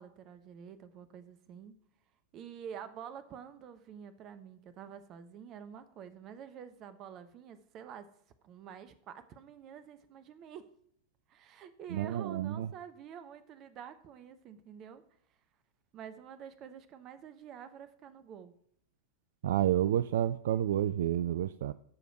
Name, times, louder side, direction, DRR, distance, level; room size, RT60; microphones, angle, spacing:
voice 1, 0.0-1.8 2.3-8.1 8.4-10.7 11.3-15.0 15.9-18.5, right 8 dB, 35° right, 12 dB, 0.9 m, -48 dB
voice 2, 11.9-12.7 19.4-21.7, right 11 dB, 60° right, 16 dB, 0.3 m, -29 dB
13.5 x 5.1 x 5.9 m, 0.67 s
figure-of-eight pair, 90°, 0 cm